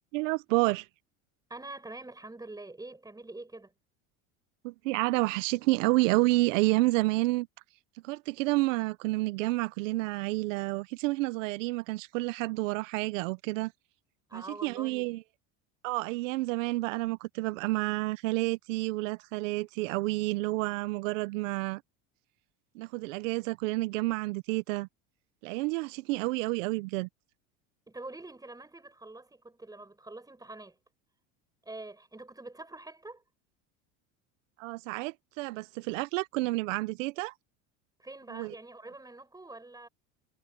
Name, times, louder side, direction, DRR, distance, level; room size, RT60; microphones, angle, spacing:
voice 1, 0.1-0.9 4.6-7.5 8.0-13.7 14.3-15.2 15.8-21.8 22.7-24.9 25.4-27.1 34.6-37.3 38.3-38.5, right 21 dB, 85° right, 0.7 m, -29 dB
voice 2, 1.5-3.7 14.3-15.1 27.9-30.8 31.6-33.2 38.0-39.9, right 2 dB, 10° right, 5.6 m, -45 dB
supercardioid pair, 105°, 37 cm